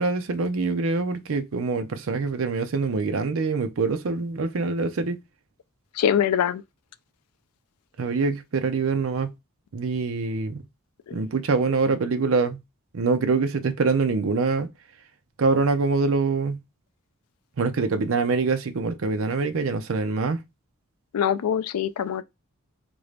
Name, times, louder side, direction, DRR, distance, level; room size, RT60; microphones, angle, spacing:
voice 1, 0.0-5.2 8.0-9.3 9.7-10.6 11.1-12.6 12.9-14.7 15.4-16.6 17.6-20.4, right 4 dB, 60° right, 0.5 m, -24 dB
voice 2, 6.0-6.6 11.1-11.2 21.1-22.2, left 9 dB, 85° left, 0.4 m, -23 dB
3.8 x 2.6 x 3.3 m
head